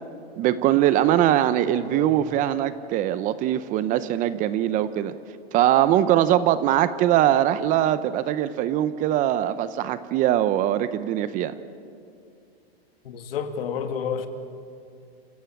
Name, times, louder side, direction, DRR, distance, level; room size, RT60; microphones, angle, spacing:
voice 1, 0.4-5.1 5.5-11.5, right 12 dB, 25° right, 0.6 m, -22 dB
voice 2, 1.7-2.2 13.0-14.3, left 7 dB, 70° left, 2.3 m, -30 dB
29.0 x 15.5 x 8.7 m
hypercardioid pair, 140°, 31 cm